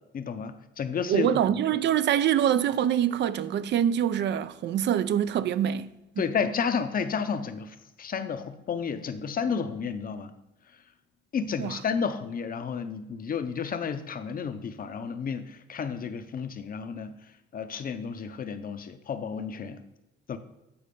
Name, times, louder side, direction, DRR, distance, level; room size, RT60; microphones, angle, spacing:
voice 1, 0.1-1.4 6.2-10.3 11.3-17.2 17.5-19.8 20.3-20.4, left 6 dB, 45° left, 0.7 m, -31 dB
voice 2, 1.1-6.3 11.6-11.8, right 10 dB, 65° right, 0.4 m, -25 dB
8.6 x 4.1 x 5.3 m
cardioid pair, 90°, 20 cm